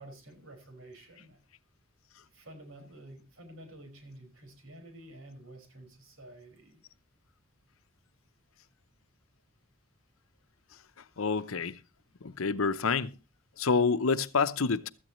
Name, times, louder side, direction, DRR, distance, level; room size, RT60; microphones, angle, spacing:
voice 1, 0.0-1.4 2.3-6.8, right 1 dB, 70° right, 5.4 m, -50 dB
voice 2, 11.2-11.8 12.2-13.2 13.6-14.9, left 4 dB, 85° left, 0.8 m, -28 dB
16.5 x 13.0 x 3.1 m
head